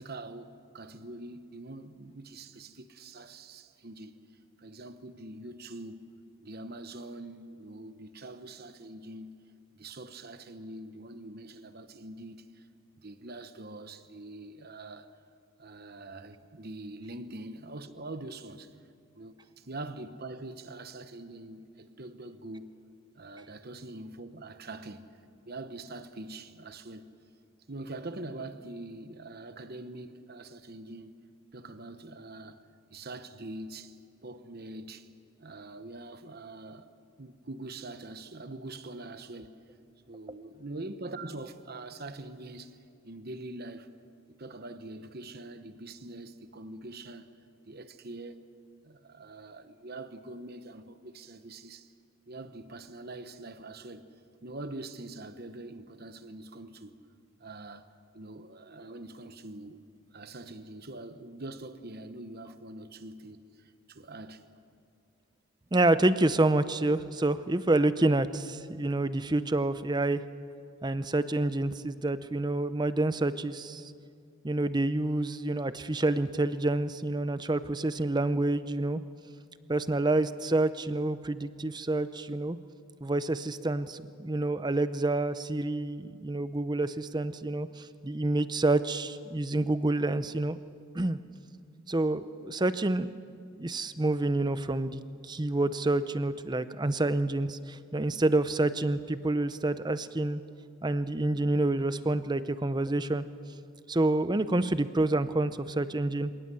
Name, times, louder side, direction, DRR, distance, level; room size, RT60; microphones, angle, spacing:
voice 1, 0.0-4.2 4.6-6.1 6.4-9.4 9.7-12.7 13.0-15.2 15.6-18.7 19.1-22.7 23.1-25.1 25.5-27.1 27.7-31.2 31.5-34.0 34.2-35.1 35.4-36.9 37.2-39.6 40.1-42.8 43.0-43.9 44.4-47.3 47.6-48.4 48.8-51.9 52.3-54.1 54.4-57.0 57.4-57.9 58.1-59.8 60.1-64.5, right 2 dB, 45° right, 1.1 m, -44 dB
voice 2, 65.7-70.2 70.8-73.9 74.4-79.0 79.7-82.6 83.0-90.6 90.9-91.2 91.9-93.1 93.5-100.4 100.8-103.3 103.9-106.3, right 2 dB, 20° right, 0.6 m, -28 dB
26.5 x 18.0 x 7.7 m
head